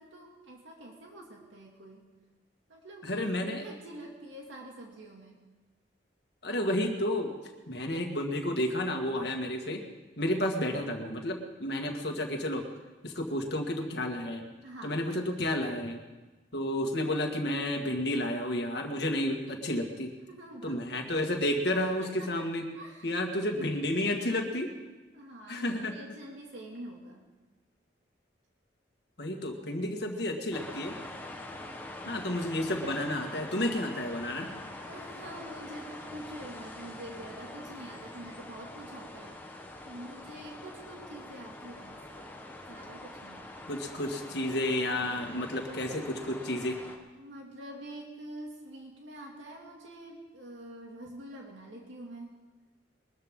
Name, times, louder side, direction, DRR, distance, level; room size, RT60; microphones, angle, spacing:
voice 1, 0.0-2.1 2.7-5.4 14.6-15.0 20.3-21.1 21.8-23.1 23.4-23.5 25.1-27.3 32.0-32.3 34.8-39.4 39.8-42.3 42.7-43.5 47.2-52.4, right 1 dB, 90° right, -1 dB, 2.4 m, -46 dB
voice 2, 3.0-3.7 6.4-7.3 7.7-9.8 10.2-12.6 13.0-14.4 14.8-16.0 16.5-20.1 20.6-22.7 23.0-24.7 25.5-25.9 29.2-30.9 32.1-34.5 43.7-46.8, left 1 dB, 60° left, 3 dB, 1.9 m, -31 dB
sound 1, 30.5-47.0, left 1 dB, 10° left, 1.2 m, -44 dB
22.0 x 13.5 x 3.8 m, 1.2 s
head